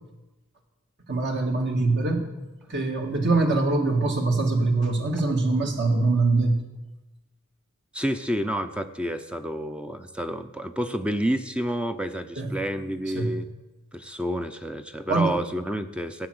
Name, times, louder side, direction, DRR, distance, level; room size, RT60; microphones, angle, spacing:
voice 1, 1.1-2.2 2.7-6.6 12.4-12.6 13.1-13.3 15.1-15.3, right 3 dB, 55° right, 3 dB, 1.9 m, -23 dB
voice 2, 7.9-13.5 13.9-16.3, equal, 5° right, 9 dB, 0.6 m, -29 dB
15.5 x 8.9 x 7.8 m, 1.0 s
head